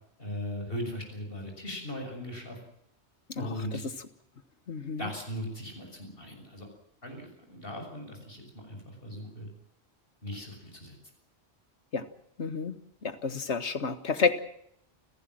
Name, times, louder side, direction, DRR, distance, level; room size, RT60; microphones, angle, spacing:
voice 1, 0.2-2.6 3.4-3.8 5.0-6.7 7.0-9.5 10.2-10.9, equal, 55° left, 3 dB, 6.9 m, -38 dB
voice 2, 3.4-3.8 4.7-5.1 11.9-12.0 12.4-12.8 13.0-14.4, left 5 dB, 85° left, 12 dB, 1.8 m, -30 dB
29.5 x 16.0 x 7.7 m, 0.72 s
omnidirectional pair, 1.1 m